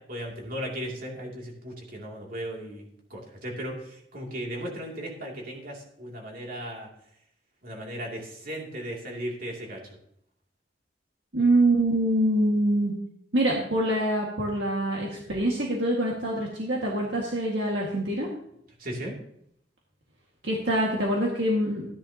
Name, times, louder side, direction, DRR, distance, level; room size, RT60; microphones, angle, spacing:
voice 1, 0.0-6.9 7.6-10.0 18.8-19.1, equal, 50° right, -1 dB, 2.6 m, -36 dB
voice 2, 11.3-12.9 13.3-18.3 20.4-21.9, right 1 dB, 65° right, -3 dB, 1.8 m, -25 dB
13.5 x 10.5 x 2.9 m, 0.73 s
head